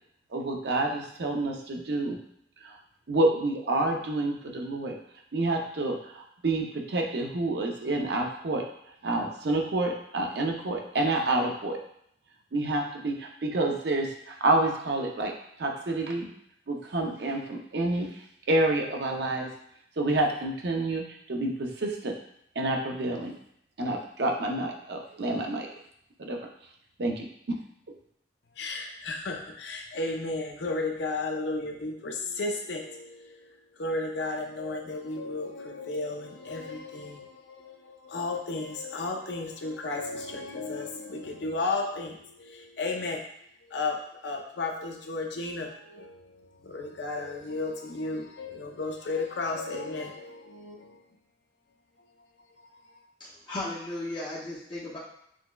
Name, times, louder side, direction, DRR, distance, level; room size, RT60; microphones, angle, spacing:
voice 1, 0.3-2.2 2.6-2.8 3.1-4.9 5.3-8.7 9.0-11.8 12.5-16.3 16.7-18.2 18.5-19.5 20.0-22.1 22.6-23.3 23.8-25.7 26.2-26.4 27.0-27.3, right 2 dB, 60° right, 1 dB, 0.5 m, -28 dB
voice 2, 28.6-43.2 43.6-51.0 52.6-53.0, left 3 dB, 70° left, 2 dB, 0.5 m, -34 dB
voice 3, 53.2-55.0, left 2 dB, 25° left, -9 dB, 0.6 m, -35 dB
6.1 x 2.1 x 2.2 m, 0.71 s
head